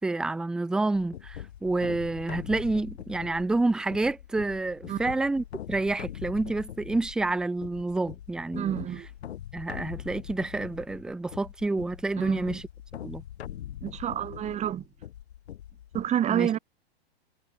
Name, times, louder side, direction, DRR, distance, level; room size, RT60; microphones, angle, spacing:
voice 1, 0.0-8.8 9.5-12.7 13.0-13.2 16.3-16.6, right 2 dB, ahead, 0.4 m, -29 dB
sound 1, 0.9-16.1, left 11 dB, 80° left, 6.6 m, -42 dB
voice 2, 8.6-9.1 12.2-12.6 13.8-14.8 15.9-16.6, right 10 dB, 20° right, 1.5 m, -29 dB
supercardioid pair, 140°, 31 cm